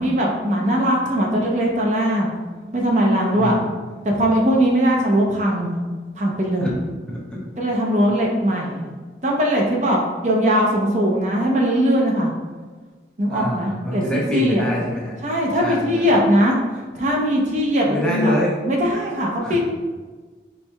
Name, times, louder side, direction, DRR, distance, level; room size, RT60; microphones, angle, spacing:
voice 1, 0.0-2.3 2.7-3.6 4.0-5.8 6.2-6.7 7.6-8.9 9.2-12.3 13.2-14.0 14.3-14.6 15.2-16.6 17.0-18.3 18.6-19.6, equal, 40° right, -1 dB, 0.6 m, -20 dB
voice 2, 3.3-3.7 6.6-6.7 7.1-7.5 13.3-15.2 15.6-16.1 17.9-18.6 19.4-19.6, equal, 5° left, -4 dB, 0.6 m, -25 dB
4.4 x 4.2 x 2.2 m, 1.4 s
head